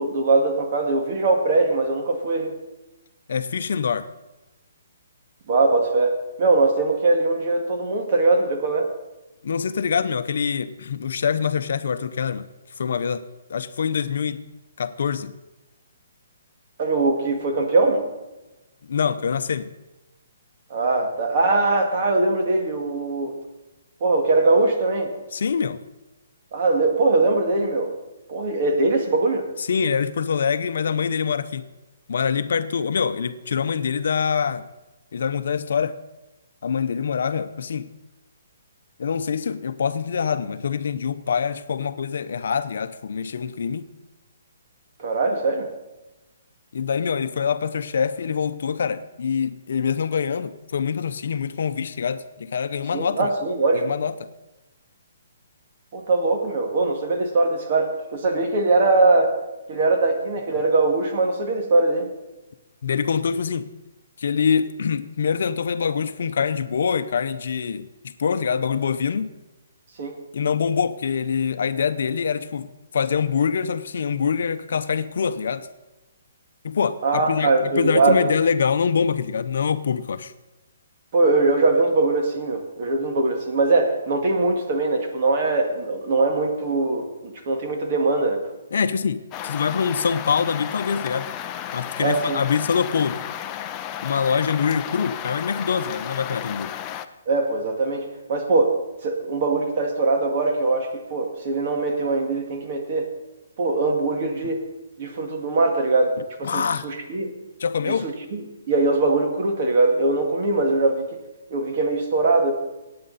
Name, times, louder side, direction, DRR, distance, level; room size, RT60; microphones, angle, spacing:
voice 1, 0.0-2.5 5.5-8.9 16.8-18.1 20.7-23.3 24.0-25.1 26.5-27.9 28.3-29.5 45.0-45.7 52.9-53.9 55.9-59.3 59.7-62.1 70.0-70.2 77.0-78.3 81.1-88.4 92.0-92.4 97.3-98.8 99.0-103.1 103.6-104.7 105.0-107.3 107.9-111.1 111.5-112.5, right 3 dB, 40° right, 3 dB, 2.0 m, -21 dB
voice 2, 3.3-4.1 9.4-12.5 12.8-13.2 13.5-14.4 14.8-15.3 18.9-19.7 25.3-25.8 29.6-31.7 32.1-34.6 35.1-36.0 36.6-37.9 39.0-43.9 46.7-53.3 53.7-54.3 62.8-63.7 64.2-69.3 70.3-75.7 76.6-80.3 88.7-91.3 91.7-93.2 94.0-96.7 106.4-106.9 107.6-108.1, left 6 dB, 65° left, 11 dB, 0.7 m, -24 dB
sound 1, 89.3-97.1, left 10 dB, 20° left, 0.5 m, -33 dB
18.0 x 8.7 x 4.1 m, 1.0 s
hypercardioid pair, 165°, 0 cm